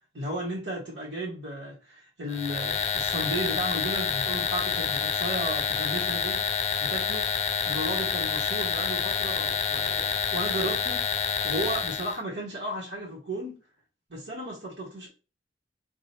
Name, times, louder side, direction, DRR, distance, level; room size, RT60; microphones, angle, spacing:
voice 1, 0.1-6.4 6.8-7.3 7.6-11.0 11.4-13.6 14.1-15.1, right 1 dB, 90° right, 1.7 m, -34 dB
sound 1, 2.3-12.2, left 6 dB, 40° left, 0.5 m, -28 dB
3.4 x 2.9 x 4.4 m
head